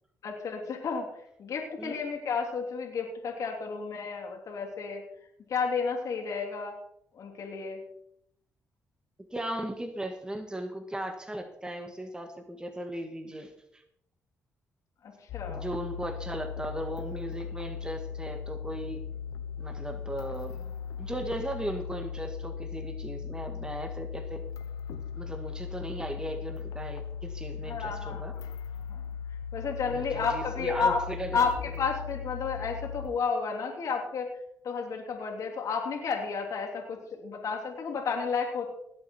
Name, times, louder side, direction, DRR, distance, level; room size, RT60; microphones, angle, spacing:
voice 1, 0.2-5.0 5.5-6.8 7.1-7.8 15.0-15.7 27.6-28.2 28.9-29.0 29.5-31.0 31.3-34.3 34.6-38.7, left 5 dB, 65° left, 0 dB, 3.0 m, -32 dB
voice 2, 9.3-13.8 15.5-19.0 19.6-20.7 21.0-24.4 25.1-28.3 29.9-31.5, right 1 dB, 15° right, 5 dB, 2.0 m, -37 dB
sound 1, 15.3-33.1, left 7 dB, 80° left, 1.1 m, -38 dB
18.5 x 7.7 x 4.6 m, 0.75 s
supercardioid pair, 60°, 6 cm